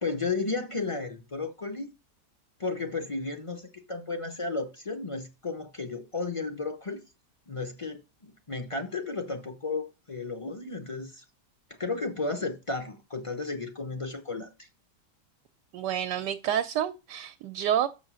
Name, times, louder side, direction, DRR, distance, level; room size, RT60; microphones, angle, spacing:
voice 1, 0.0-1.9 2.6-7.0 7.5-11.2 11.7-14.7, left 3 dB, 25° left, 0.7 m, -33 dB
voice 2, 15.7-17.9, right 10 dB, 80° right, 1.2 m, -29 dB
6.4 x 6.2 x 6.1 m
omnidirectional pair, 1.9 m